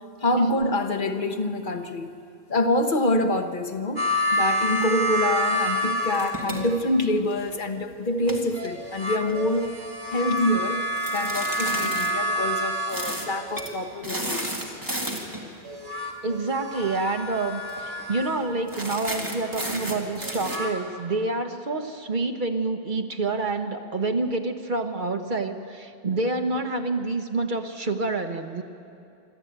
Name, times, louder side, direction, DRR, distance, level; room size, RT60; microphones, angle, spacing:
voice 1, 0.2-2.1 2.5-9.7 10.1-10.8 11.1-14.8, left 1 dB, 55° left, 6 dB, 1.2 m, -26 dB
sound 1, 4.0-6.8 8.5-13.8 15.6-18.5 20.2-20.7, equal, 75° right, 2.1 m, -28 dB
sound 2, 6.1-7.6 8.1-9.7 11.0-12.1 12.9-13.3 13.5-13.7 14.0-15.4 16.7-17.0 17.3-17.4 17.7-18.0 18.7-20.6, right 1 dB, 20° right, 2.1 m, -33 dB
voice 2, 16.2-28.6, right 3 dB, 55° right, 6 dB, 1.2 m, -28 dB
26.0 x 12.5 x 8.8 m, 2.5 s
omnidirectional pair, 1.0 m